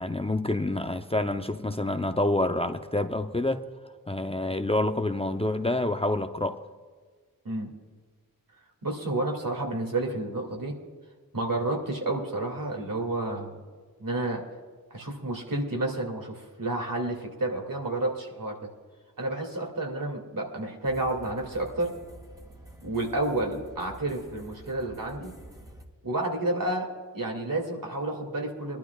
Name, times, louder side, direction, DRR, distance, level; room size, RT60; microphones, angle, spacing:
voice 1, 0.0-3.6 4.1-6.6, left 1 dB, 15° left, 6 dB, 0.6 m, -27 dB
voice 2, 8.8-10.7 11.3-13.6 14.0-14.4 14.9-18.6 19.2-22.0 22.8-25.3 26.0-26.9 27.1-28.8, right 2 dB, 65° right, 1 dB, 2.4 m, -30 dB
sound 1, 20.8-25.9, right 1 dB, 10° right, 1.8 m, -48 dB
23.0 x 12.0 x 2.4 m, 1.5 s
wide cardioid pair, 65°, 36 cm